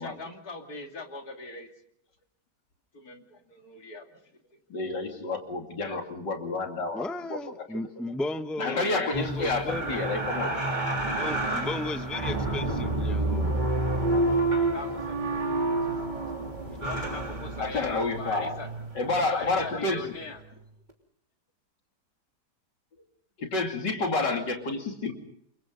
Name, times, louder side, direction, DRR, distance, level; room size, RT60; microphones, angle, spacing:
voice 1, 0.0-1.7 2.9-4.4 14.5-15.4 16.8-18.7 19.3-20.4, left 3 dB, 60° left, 3 dB, 3.2 m, -41 dB
voice 2, 4.7-7.0 7.3-7.8 8.6-10.6 17.6-18.6 18.9-20.2 23.4-25.1, left 3 dB, 90° left, 3 dB, 3.3 m, -29 dB
voice 3, 6.9-9.9 11.0-13.5, left 2 dB, ahead, 8 dB, 0.8 m, -35 dB
Ft Worden WA Doors Morphagene Reel, 9.1-20.5 20.9-21.0, right 2 dB, 25° right, 3.4 m, -29 dB
28.5 x 24.0 x 3.9 m, 0.71 s
omnidirectional pair, 1.8 m